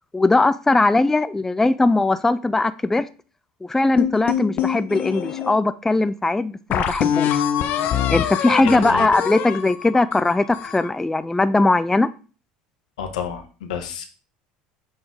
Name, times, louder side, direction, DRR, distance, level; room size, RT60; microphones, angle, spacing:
voice 1, 0.1-3.0 3.6-7.4 8.1-12.1, left 2 dB, 10° left, 0.3 m, -19 dB
sound 1, 4.0-5.5 6.1-6.2 6.7-10.9, left 10 dB, 55° left, 0.7 m, -24 dB
voice 2, 8.6-9.1 13.0-14.0, left 7 dB, 80° left, 1.0 m, -30 dB
6.8 x 3.8 x 3.6 m
hypercardioid pair, 75°, 4 cm